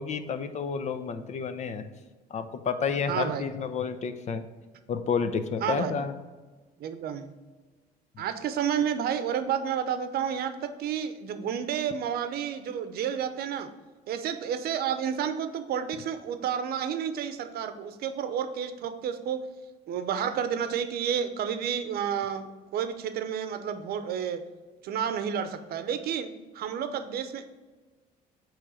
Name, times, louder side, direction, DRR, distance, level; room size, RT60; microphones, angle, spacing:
voice 1, 0.0-1.8 2.3-4.4 4.9-6.1, left 6 dB, 45° left, 10 dB, 0.7 m, -30 dB
voice 2, 3.1-3.6 5.6-6.0 6.8-7.3 8.2-13.7 14.1-19.4 19.9-22.5 22.7-24.4 24.8-27.5, right 8 dB, 65° right, 10 dB, 0.7 m, -30 dB
8.6 x 3.2 x 5.0 m, 1.3 s
cardioid pair, 110°, 17 cm